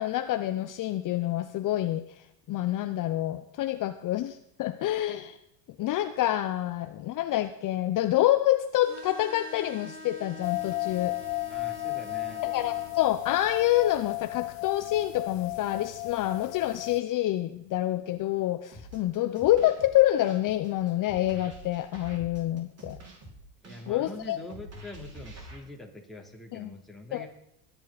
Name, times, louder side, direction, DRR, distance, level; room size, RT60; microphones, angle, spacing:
voice 1, 0.0-2.0 2.5-5.4 5.8-11.1 12.4-23.0 23.9-24.4 26.5-26.7 27.1-27.3, left 14 dB, 45° left, 9 dB, 0.9 m, -27 dB
sound 1, 8.8-12.9, equal, 75° right, 4.9 m, -45 dB
sound 2, 10.4-17.0, left 27 dB, 75° left, 0.7 m, -34 dB
voice 2, 11.5-12.4 23.6-27.3, left 2 dB, ahead, -1 dB, 3.3 m, -44 dB
sound 3, 18.7-25.6, right 1 dB, 35° right, 5.3 m, -47 dB
22.5 x 10.5 x 4.2 m, 0.76 s
supercardioid pair, 110°, 45 cm